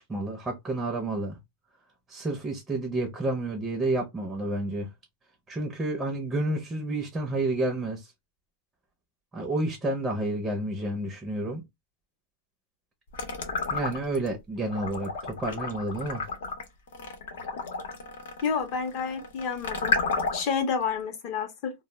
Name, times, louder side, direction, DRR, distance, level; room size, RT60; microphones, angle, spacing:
voice 1, 0.0-1.4 2.1-4.9 5.5-8.1 9.3-11.6 13.7-16.3, right 2 dB, 10° right, 0.5 m, -30 dB
sound 1, 13.1-14.3 14.7-20.6, left 4 dB, 75° left, 0.8 m, -32 dB
voice 2, 18.4-20.0 20.3-21.8, left 6 dB, 35° left, 0.6 m, -29 dB
2.1 x 2.0 x 3.1 m
supercardioid pair, 165°, 0 cm